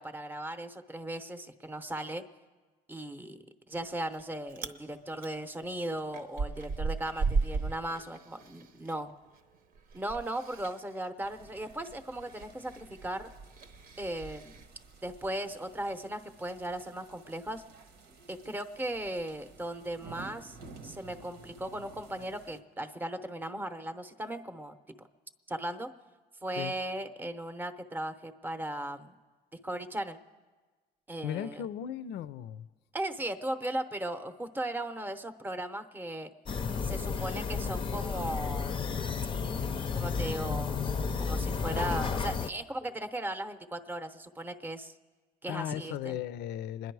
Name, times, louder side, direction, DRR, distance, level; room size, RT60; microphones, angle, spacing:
voice 1, 0.0-2.2 2.9-3.4 3.7-9.1 9.9-13.3 14.0-14.6 15.0-17.6 18.3-20.6 20.8-24.8 25.5-25.9 26.4-29.1 29.6-30.2 31.1-31.7 32.9-36.3 36.8-39.0 39.9-40.9 41.2-44.9 45.4-46.2, right 1 dB, 10° right, 9 dB, 0.7 m, -37 dB
Chewing mastication, 3.7-4.2 4.5-4.8 5.2-9.0 9.3-14.7, right 4 dB, 60° right, 0.9 m, -36 dB
sound 1, 11.2-22.6, right 4 dB, 85° right, 1.2 m, -53 dB
voice 2, 31.2-32.6 45.5-46.9, left 10 dB, 80° left, 14 dB, 0.5 m, -36 dB
sound 2, 36.5-42.5, left 5 dB, 30° left, 0.5 m, -32 dB
26.5 x 10.5 x 4.7 m, 1.3 s
cardioid pair, 110°, 17 cm